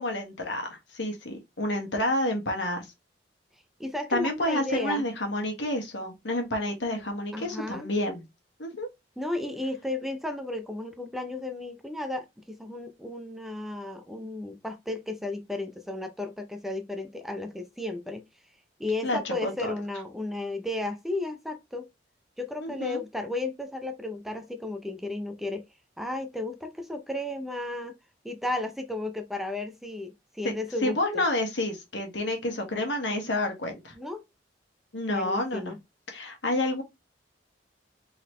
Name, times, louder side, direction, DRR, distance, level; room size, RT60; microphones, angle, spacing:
voice 1, 0.0-2.9 4.1-8.2 8.6-8.9 19.0-19.7 22.6-23.0 30.4-30.5 30.8-33.9 34.9-35.7 36.1-36.8, left 1 dB, 80° left, 1.5 m, -29 dB
voice 2, 3.8-5.0 7.3-7.9 9.2-18.2 18.8-21.9 22.4-25.6 26.0-27.9 28.2-31.0 33.9-34.2 35.1-35.8, left 2 dB, ahead, 0.6 m, -34 dB
3.9 x 3.9 x 3.1 m
head